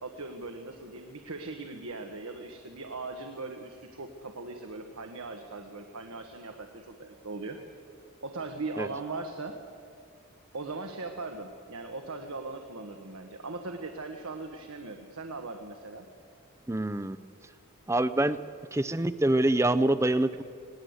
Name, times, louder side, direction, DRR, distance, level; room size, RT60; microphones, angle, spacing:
voice 1, 0.0-7.6 8.2-9.6 10.5-16.1, right 3 dB, 80° right, 5 dB, 1.3 m, -39 dB
voice 2, 16.7-17.2 17.9-18.4 18.7-20.4, right 1 dB, 15° right, 14 dB, 0.5 m, -25 dB
21.0 x 17.5 x 8.1 m, 2.2 s
head